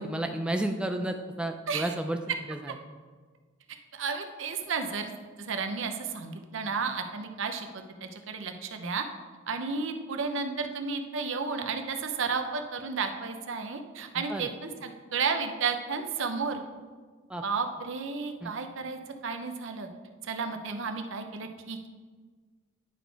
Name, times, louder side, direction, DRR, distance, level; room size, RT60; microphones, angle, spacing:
voice 1, 0.0-2.2 2.5-2.7 14.3-14.5 17.3-17.4 18.4-18.5, right 1 dB, 5° right, 5 dB, 0.3 m, -31 dB
voice 2, 3.9-5.1 5.4-9.0 9.5-16.6 17.4-19.9 20.2-21.9, right 5 dB, 65° right, 6 dB, 0.7 m, -32 dB
9.9 x 4.1 x 4.6 m, 1.5 s
head